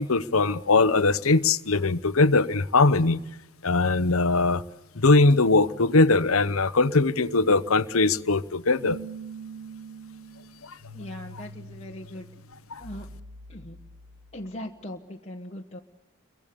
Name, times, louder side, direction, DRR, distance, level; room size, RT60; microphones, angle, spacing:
voice 1, 0.0-3.2 3.6-4.6 5.0-9.0 10.6-10.8 12.7-12.8, left 3 dB, 75° left, 14 dB, 1.0 m, -21 dB
sound 1, 6.8-14.7, right 3 dB, 70° right, 2.1 m, -43 dB
voice 2, 10.9-12.3 12.8-13.1 13.5-13.8 14.3-15.8, left 1 dB, 30° left, -1 dB, 1.4 m, -39 dB
29.5 x 23.5 x 7.0 m, 0.97 s
head